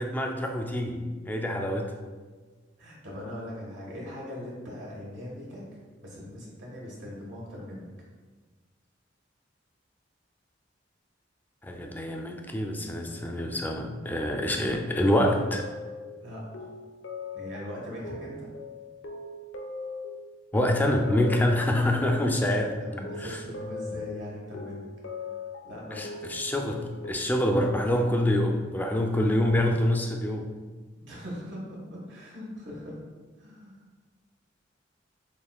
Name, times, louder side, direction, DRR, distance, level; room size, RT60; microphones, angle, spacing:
voice 1, 0.0-1.9 11.6-15.6 20.5-22.8 23.2-23.4 25.9-30.5, left 1 dB, 10° left, 3 dB, 0.3 m, -26 dB
voice 2, 2.8-5.6 6.0-7.9 16.2-16.7 17.3-18.5 22.4-24.9 25.6-26.1 31.0-33.0 33.4-33.8, left 1 dB, 85° right, -4 dB, 1.4 m, -40 dB
sound 1, 13.0-13.6 14.0-27.1, left 3 dB, 85° left, 0.5 m, -41 dB
6.6 x 2.5 x 2.3 m, 1.4 s
head